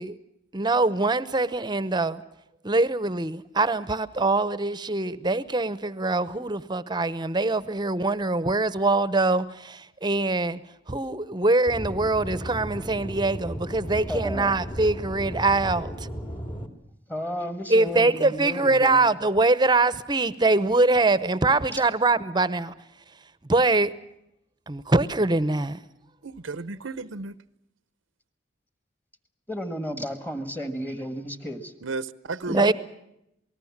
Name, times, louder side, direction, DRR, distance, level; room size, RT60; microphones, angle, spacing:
voice 1, 0.5-2.2 2.6-10.6 10.9-15.9 17.7-22.7 23.5-23.9 24.7-25.8 32.5-32.7, right 2 dB, 20° right, 0.9 m, -23 dB
Aircraft / Engine, 11.7-16.7, equal, 25° left, 2.3 m, -35 dB
voice 2, 14.1-14.6 17.1-19.0 29.5-31.7 32.5-32.7, equal, 10° left, 1.7 m, -32 dB
voice 3, 26.2-27.4 31.8-32.6, right 3 dB, 90° right, 0.8 m, -34 dB
28.0 x 19.5 x 7.4 m
head